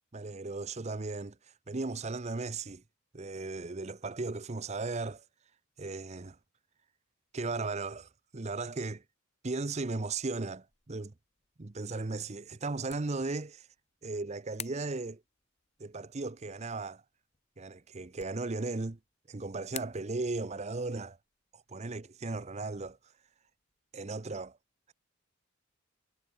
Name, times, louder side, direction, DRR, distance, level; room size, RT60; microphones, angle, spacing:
voice 1, 0.1-1.4 1.7-2.8 3.1-5.2 5.8-6.4 7.3-9.0 9.4-11.1 11.6-13.7 14.0-15.2 15.8-17.0 17.6-19.0 19.3-21.2 21.5-23.0 23.9-24.6, right 3 dB, 30° right, 0.7 m, -36 dB
sound 1, 10.2-24.3, left 9 dB, 30° left, 1.5 m, -54 dB
head